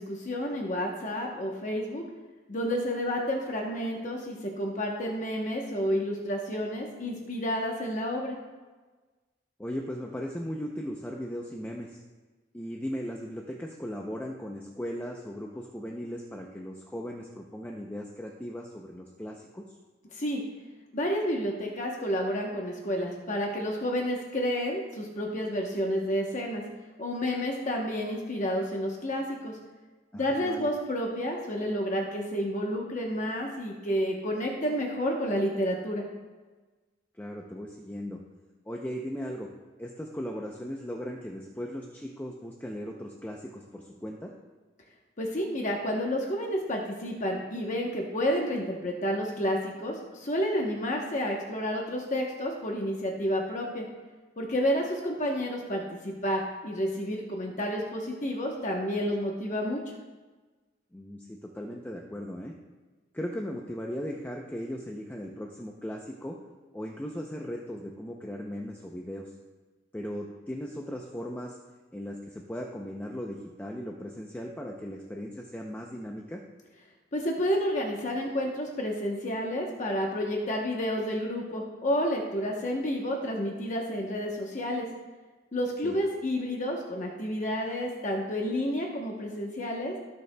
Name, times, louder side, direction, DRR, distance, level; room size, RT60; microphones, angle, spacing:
voice 1, 0.0-2.0 2.5-8.4 20.1-20.4 20.9-26.6 27.0-29.6 30.1-36.0 45.2-53.8 54.4-59.9 77.1-84.9 85.5-89.9, equal, 40° left, 0 dB, 0.9 m, -30 dB
voice 2, 9.6-12.0 12.5-19.8 30.1-30.7 37.1-38.2 38.7-39.5 39.8-44.3 60.9-62.5 63.1-66.4 66.7-69.3 69.9-71.6 71.9-76.4 85.8-85.9, equal, 10° left, 0 dB, 0.5 m, -37 dB
17.0 x 6.7 x 2.2 m, 1.3 s
head